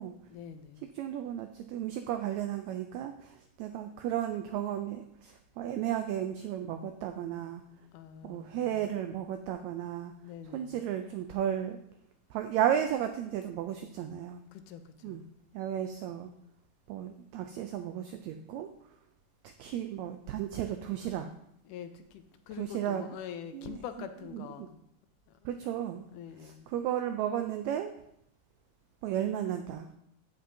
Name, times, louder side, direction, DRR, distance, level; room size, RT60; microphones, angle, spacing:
voice 1, 0.3-0.9 7.9-8.8 10.2-10.8 14.5-15.3 21.7-24.8 26.1-26.7, left 9 dB, 80° left, 9 dB, 2.1 m, -45 dB
voice 2, 0.9-7.6 8.2-10.1 10.5-11.8 12.3-14.4 15.0-15.3 15.5-16.3 16.9-18.7 19.4-21.3 22.6-23.1 23.5-24.1 24.3-24.7 25.4-26.0 26.4-27.9 29.0-29.9, right 10 dB, 90° right, 7 dB, 1.6 m, -34 dB
15.0 x 5.2 x 2.7 m, 0.74 s
omnidirectional pair, 3.7 m